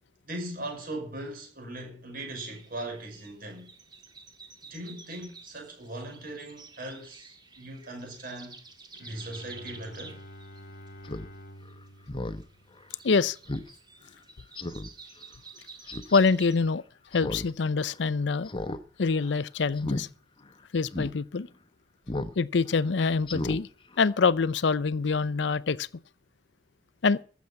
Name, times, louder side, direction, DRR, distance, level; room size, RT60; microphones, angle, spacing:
voice 1, 0.3-3.7 4.7-8.5 9.0-10.2, right 1 dB, 55° right, 5.8 m, -39 dB
sound 1, 2.4-16.6, right 4 dB, 25° right, 2.0 m, -51 dB
Bowed string instrument, 8.9-13.4, equal, 55° left, 1.2 m, -49 dB
Speech synthesizer, 11.0-11.3 11.7-11.8 12.1-12.4 12.8-12.9 13.5-13.7 14.0-14.1 14.6-14.9 15.9-16.2 17.1-17.5 17.8-17.9 18.5-18.8 19.1-19.3 19.8-20.0 20.5-20.6 20.9-21.1 22.1-22.4 22.7-22.8 23.2-23.6 23.9-24.0, left 1 dB, 30° left, 1.0 m, -33 dB
voice 2, 13.0-13.4 16.1-16.8 17.1-18.5 19.0-20.1 20.7-21.5 22.4-23.7 24.0-25.9 27.0-27.2, left 4 dB, 70° left, 0.6 m, -25 dB
14.5 x 7.2 x 8.4 m
head